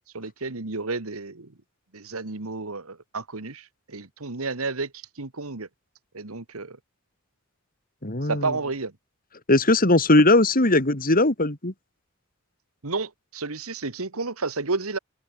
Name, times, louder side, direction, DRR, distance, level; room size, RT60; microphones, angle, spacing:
voice 1, 0.1-1.5 1.9-4.9 5.2-5.7 6.1-6.8 8.3-8.9 12.8-15.0, right 3 dB, 80° right, 1.7 m, -31 dB
voice 2, 8.0-8.5 9.5-11.7, left 2 dB, 45° left, 3.3 m, -19 dB
open air
head